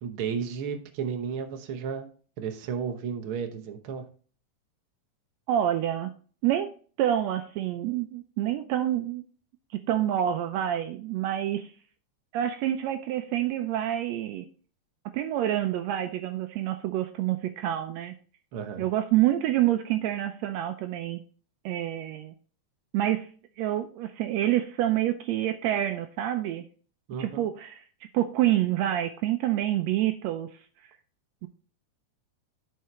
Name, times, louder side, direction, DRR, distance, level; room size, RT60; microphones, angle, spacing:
voice 1, 0.0-2.1 2.4-4.1 18.5-18.9 27.1-27.5, right 6 dB, 65° right, 6 dB, 1.3 m, -33 dB
voice 2, 5.5-6.1 6.4-6.7 7.0-9.2 9.7-11.7 12.3-14.4 15.1-18.1 18.8-21.2 21.6-22.3 22.9-23.3 23.6-26.6 27.2-27.8 28.1-30.6 31.4-31.5, right 12 dB, 90° right, 8 dB, 1.5 m, -27 dB
11.0 x 4.7 x 3.1 m, 0.41 s
omnidirectional pair, 3.7 m